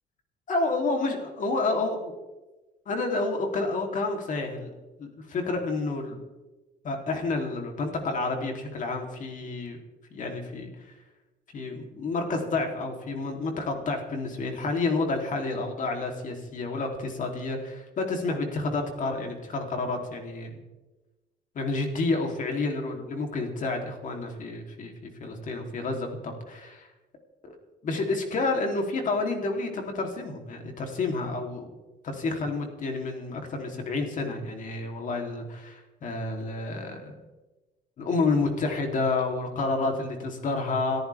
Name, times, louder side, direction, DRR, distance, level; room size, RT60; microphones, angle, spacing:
voice 1, 0.5-2.1 2.9-4.7 5.0-6.2 6.8-9.8 10.1-10.7 11.5-20.6 21.6-26.9 27.4-27.6 27.8-31.7 32.0-37.2 38.0-41.0, left 3 dB, 50° left, 3 dB, 3.4 m, -29 dB
25.5 x 14.0 x 3.6 m, 1.1 s
cardioid pair, 110°, 17 cm